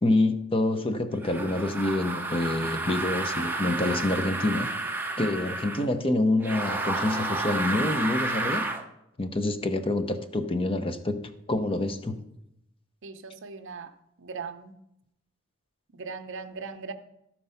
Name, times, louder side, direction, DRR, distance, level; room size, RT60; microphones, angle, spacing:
voice 1, 0.0-4.7 5.2-8.6 9.2-11.2 11.5-12.2, left 2 dB, 25° left, 9 dB, 0.7 m, -27 dB
sound 1, 1.2-5.9 6.4-8.8, right 2 dB, 10° right, 0.8 m, -31 dB
voice 2, 13.0-14.8 15.9-16.9, right 5 dB, 60° right, 8 dB, 0.7 m, -39 dB
13.5 x 4.5 x 5.6 m, 0.82 s
head